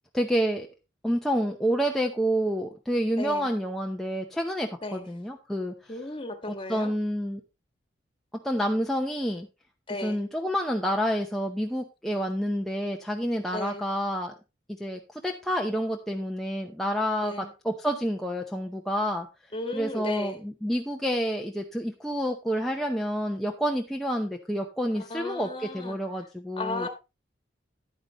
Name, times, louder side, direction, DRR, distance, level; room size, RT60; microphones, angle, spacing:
voice 1, 0.1-0.7 1.0-5.7 6.5-7.4 8.4-9.5 10.0-14.3 14.8-17.3 17.6-19.3 19.7-26.9, equal, ahead, 0.7 m, -28 dB
voice 2, 3.2-3.5 4.8-5.1 5.9-6.9 9.9-10.2 13.5-13.8 17.2-17.5 19.5-20.4 25.0-26.0 26.6-26.9, left 2 dB, 30° left, 1.5 m, -35 dB
10.5 x 9.4 x 3.0 m
head